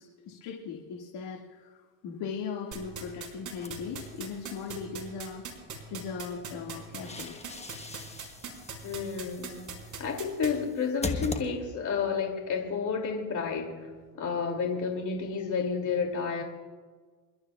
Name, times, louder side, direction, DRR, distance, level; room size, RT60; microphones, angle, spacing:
voice 1, 0.0-5.4 5.9-7.4, left 5 dB, 65° left, 0 dB, 2.1 m, -39 dB
sound 1, 2.7-10.5, right 7 dB, 40° right, 4.4 m, -39 dB
sound 2, 3.6-4.7 6.6-12.0, left 2 dB, 15° left, 1.2 m, -40 dB
voice 2, 8.8-9.6 10.0-13.7 14.2-16.4, left 5 dB, 40° left, 1 dB, 2.7 m, -30 dB
28.5 x 12.5 x 2.4 m, 1.5 s
supercardioid pair, 105°, 46 cm